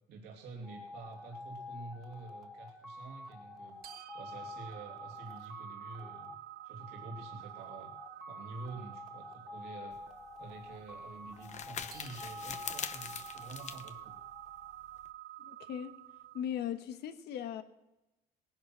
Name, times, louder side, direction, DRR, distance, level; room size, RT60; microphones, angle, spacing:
voice 1, 0.1-3.8 4.1-6.4 6.6-7.9 8.3-10.0 10.4-14.2, right 3 dB, 80° right, 2.9 m, -48 dB
sound 1, 0.6-15.1, left 2 dB, ahead, 1.9 m, -49 dB
sound 2, 3.8-16.4, right 14 dB, 65° right, 0.7 m, -50 dB
sound 3, 9.9-15.1, left 7 dB, 45° left, 1.0 m, -44 dB
voice 2, 15.4-15.9 16.3-17.6, left 9 dB, 75° left, 1.3 m, -38 dB
18.5 x 10.5 x 6.1 m
cardioid pair, 110°, 17 cm